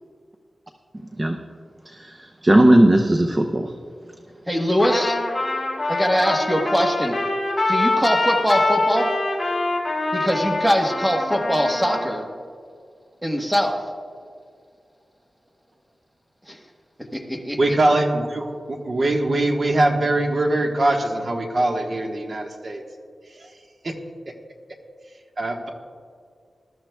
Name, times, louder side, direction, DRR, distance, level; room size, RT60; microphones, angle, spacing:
voice 1, 1.9-3.7, right 1 dB, 25° right, 4 dB, 0.6 m, -17 dB
voice 2, 4.5-5.2 5.9-7.2 7.6-9.1 10.1-12.2 13.2-13.9 16.5-16.6 17.1-17.6, equal, 5° right, 2 dB, 1.3 m, -22 dB
Trumpet, 4.8-12.2, left 2 dB, 15° left, 3.6 m, -24 dB
voice 3, 17.6-22.8 23.4-23.5 23.8-23.9 25.4-25.7, right 2 dB, 50° right, 2 dB, 1.3 m, -22 dB
20.0 x 13.0 x 2.3 m, 2.1 s
wide cardioid pair, 100°, 0 cm